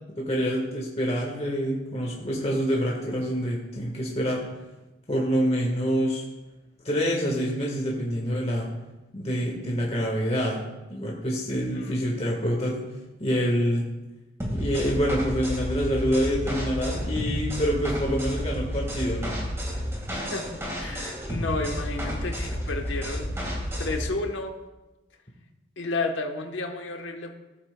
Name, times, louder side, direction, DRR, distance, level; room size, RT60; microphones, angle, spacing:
voice 1, 0.2-4.4 5.1-6.2 6.8-8.7 9.1-10.6 10.9-12.8 13.2-13.8 14.5-19.4, equal, 30° left, -2 dB, 1.4 m, -26 dB
voice 2, 11.7-12.1 20.3-24.6 25.8-27.3, left 3 dB, 75° left, 4 dB, 1.0 m, -32 dB
sound 1, 14.4-24.1, equal, 15° right, 1.7 m, -31 dB
15.0 x 8.5 x 2.2 m, 1.1 s
head